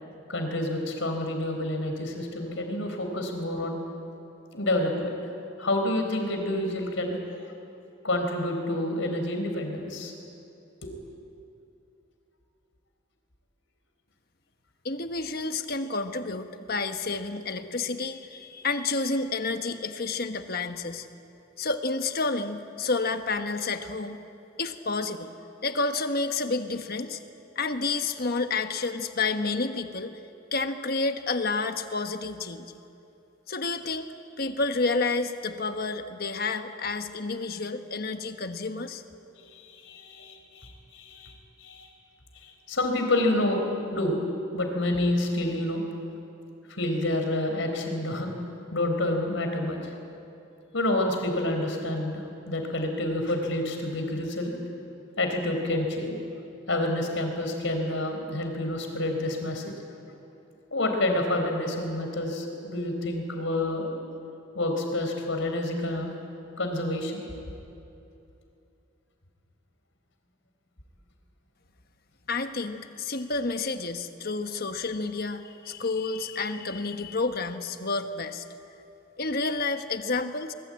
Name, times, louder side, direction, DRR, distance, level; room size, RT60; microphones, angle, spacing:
voice 1, 0.3-3.8 4.5-5.1 5.6-7.2 8.0-10.1 10.8-10.9 39.4-41.9 42.3-43.6 43.9-44.2 44.5-45.8 46.7-48.3 48.7-49.8 50.7-54.5 55.2-56.2 56.7-59.7 60.7-64.0 64.5-66.1 66.6-67.3, left 1 dB, 70° left, 4 dB, 4.3 m, -28 dB
voice 2, 14.8-21.1 21.6-24.2 24.6-25.3 25.6-27.2 27.5-30.2 30.5-32.7 33.5-34.1 34.4-39.0 72.3-78.4 79.2-80.5, left 3 dB, 50° left, 7 dB, 1.3 m, -30 dB
23.5 x 21.5 x 8.9 m, 2.7 s
head